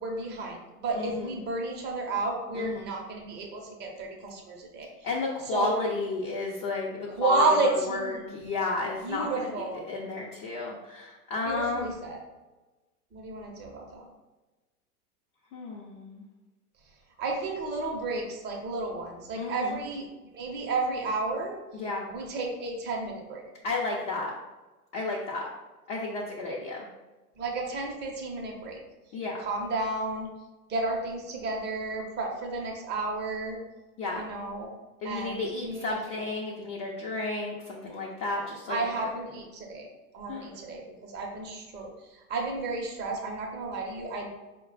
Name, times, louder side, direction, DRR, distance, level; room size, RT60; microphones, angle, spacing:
voice 1, 0.0-4.9 5.5-5.9 7.2-8.3 9.0-9.8 11.4-12.2 13.1-14.1 17.2-20.1 20.3-21.6 22.1-23.4 27.4-28.8 29.4-30.3 30.7-33.6 34.1-34.7 35.0-35.9 38.7-39.9 40.1-44.3, right 3 dB, 20° right, 0 dB, 0.7 m, -32 dB
voice 2, 0.9-1.3 2.5-2.9 5.0-11.9 15.5-16.2 19.3-19.8 21.7-22.1 23.6-24.3 24.9-25.5 25.9-26.9 29.1-29.4 34.0-34.3 35.0-38.8 40.3-40.5, left 3 dB, 30° left, -3 dB, 0.6 m, -32 dB
4.5 x 2.2 x 3.9 m, 1.2 s
figure-of-eight pair, 100°, 47 cm